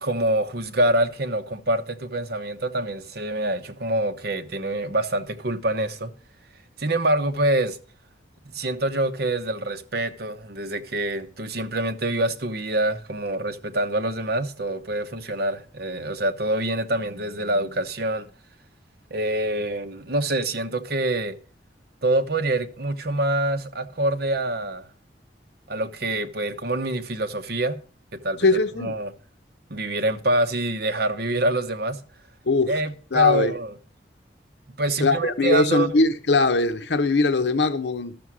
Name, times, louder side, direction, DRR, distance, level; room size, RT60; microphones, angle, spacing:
voice 1, 0.0-6.1 6.8-7.8 8.5-18.3 19.1-21.4 22.0-24.9 25.7-27.8 28.1-29.1 29.7-32.0 32.7-33.7 34.8-35.9, right 1 dB, 65° right, 1.1 m, -26 dB
voice 2, 28.4-29.0 32.4-32.8 33.1-33.6 35.0-38.2, left 3 dB, 80° left, 0.8 m, -21 dB
12.0 x 6.9 x 6.2 m
head